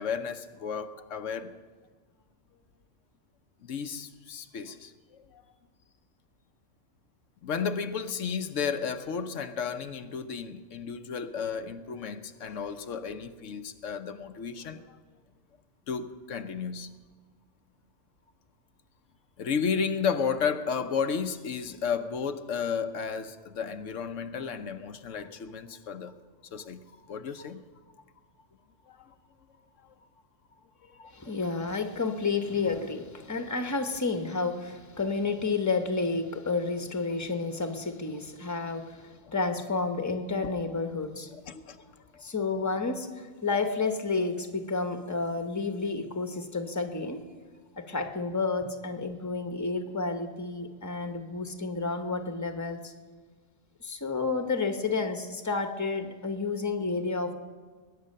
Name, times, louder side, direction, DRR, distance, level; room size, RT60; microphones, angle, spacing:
voice 1, 0.0-1.5 3.6-4.9 5.3-5.4 7.4-15.0 15.9-17.0 19.4-26.1 26.5-26.8 27.1-27.6 28.9-29.1 30.8-31.2 41.3-41.8 42.1-42.2, left 6 dB, 90° left, 1.2 m, -33 dB
voice 2, 31.1-41.3 42.2-47.2 47.8-52.9 53.8-57.3, left 4 dB, 15° left, 1.0 m, -30 dB
20.5 x 9.6 x 6.6 m
omnidirectional pair, 1.2 m